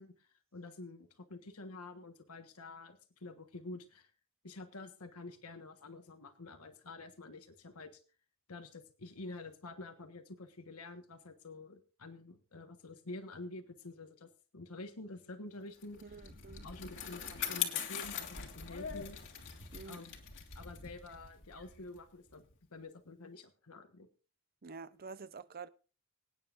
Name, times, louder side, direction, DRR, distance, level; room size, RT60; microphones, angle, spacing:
voice 1, 0.0-4.1 4.4-8.0 8.5-16.2 16.6-19.2 19.8-20.2 20.5-22.4 22.7-24.1, left 2 dB, 85° left, 1.4 m, -48 dB
Bicycle, 15.8-22.5, left 8 dB, 60° left, 2.0 m, -42 dB
voice 2, 16.0-16.7 19.7-20.0 24.6-25.7, right 4 dB, 45° right, 0.7 m, -48 dB
25.0 x 9.3 x 2.6 m
head